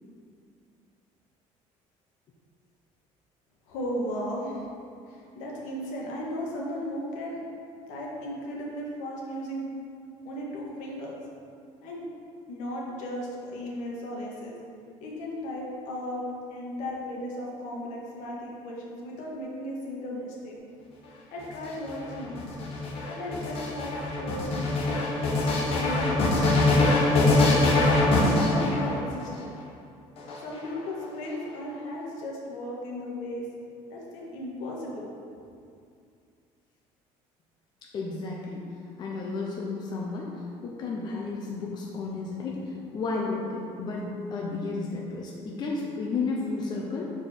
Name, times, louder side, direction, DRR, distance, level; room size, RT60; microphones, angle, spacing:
voice 1, 3.7-4.6 5.0-7.4 7.9-9.7 10.2-11.2 11.8-12.0 12.5-14.6 15.0-16.2 16.5-20.5 21.3-22.5 23.1-23.9 24.2-25.2 25.7-27.8 28.1-29.5 30.4-33.5 33.9-35.1, equal, 75° left, -3 dB, 1.6 m, -36 dB
sound 1, 21.4-29.4 30.2-31.0, left 2 dB, 50° left, 1.2 m, -23 dB
voice 2, 37.9-38.6 39.0-47.1, left 3 dB, 35° left, -3 dB, 0.7 m, -32 dB
6.7 x 4.6 x 4.4 m, 2.4 s
cardioid pair, 155°, 13 cm